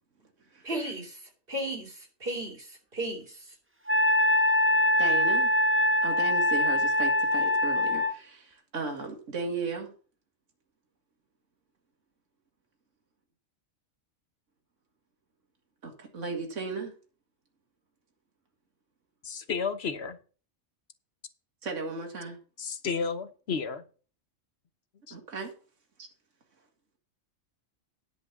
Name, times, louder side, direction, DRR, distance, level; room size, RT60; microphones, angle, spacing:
voice 1, 0.6-1.2 1.5-3.4, right 1 dB, 45° right, 3.1 m, -35 dB
Wind instrument woodwind instrument, 3.9-8.2, left 1 dB, 10° right, 0.7 m, -23 dB
voice 2, 5.0-5.5 6.0-9.9 15.8-16.9 21.6-22.4 25.1-25.5, right 4 dB, 65° right, 2.2 m, -35 dB
voice 3, 19.2-20.2 22.6-23.8 25.1-25.2, left 5 dB, 55° left, 1.1 m, -32 dB
10.5 x 5.0 x 7.0 m
omnidirectional pair, 1.4 m